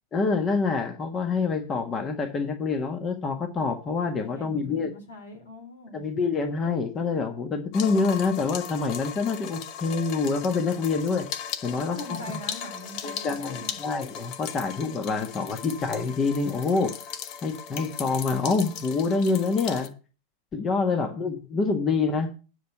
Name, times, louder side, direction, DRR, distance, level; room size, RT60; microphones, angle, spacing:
voice 1, 0.1-4.9 5.9-11.2 11.6-12.2 13.2-16.9 17.4-19.9 20.5-22.3, left 4 dB, 25° left, 6 dB, 1.5 m, -26 dB
voice 2, 4.2-6.1 11.7-13.9 20.9-21.2, left 1 dB, 70° left, 4 dB, 3.3 m, -43 dB
sound 1, 7.7-19.9, left 8 dB, 40° left, 1.0 m, -38 dB
10.0 x 5.9 x 6.6 m, 0.35 s
figure-of-eight pair, 90°, 0 cm